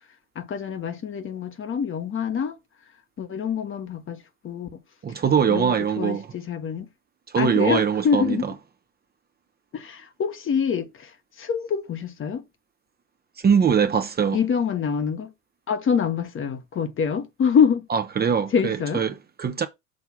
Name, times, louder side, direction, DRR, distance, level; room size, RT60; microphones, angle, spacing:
voice 1, 0.3-2.6 3.2-4.8 5.5-6.9 7.3-8.5 9.7-12.4 14.3-15.3 15.7-17.9 18.5-19.0, left 7 dB, 30° left, 1.1 m, -25 dB
voice 2, 5.0-6.3 7.3-8.5 13.4-14.4 17.9-19.7, right 7 dB, 25° right, 0.8 m, -22 dB
6.4 x 3.4 x 5.7 m
figure-of-eight pair, 65°, 39 cm